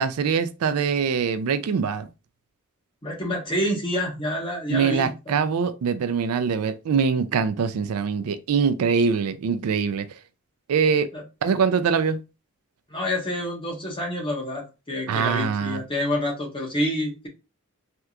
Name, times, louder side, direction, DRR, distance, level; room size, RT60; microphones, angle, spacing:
voice 1, 0.0-2.1 4.7-10.1 10.7-11.1 11.4-12.2 15.1-15.8, right 6 dB, 75° right, 0.4 m, -23 dB
voice 2, 3.0-5.3 11.1-11.2 12.9-17.3, left 1 dB, 25° left, 1.0 m, -28 dB
3.3 x 2.9 x 2.4 m
head